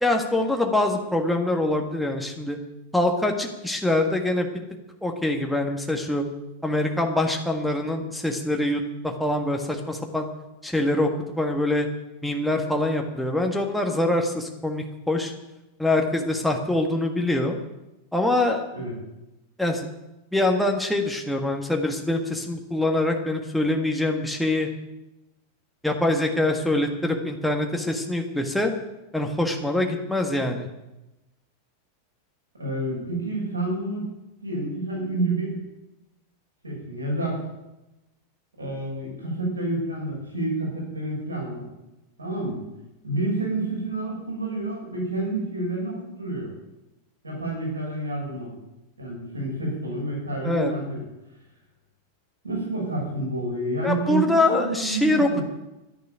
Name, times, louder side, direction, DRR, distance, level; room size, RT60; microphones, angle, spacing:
voice 1, 0.0-2.6 2.9-4.5 5.0-6.3 6.6-10.3 10.6-11.1 11.4-11.9 12.2-15.3 15.8-17.6 18.1-18.6 19.6-19.9 20.3-24.7 25.8-28.7 29.1-30.7 50.4-50.7 53.8-55.4, left 1 dB, ahead, 2 dB, 1.7 m, -24 dB
voice 2, 32.6-34.0 34.4-35.6 36.6-37.4 38.6-41.7 42.2-42.6 43.0-46.5 47.2-48.5 49.0-51.0 52.4-55.4, right 2 dB, 80° right, -2 dB, 6.2 m, -29 dB
12.0 x 10.5 x 9.2 m, 0.98 s
figure-of-eight pair, 90°, 0 cm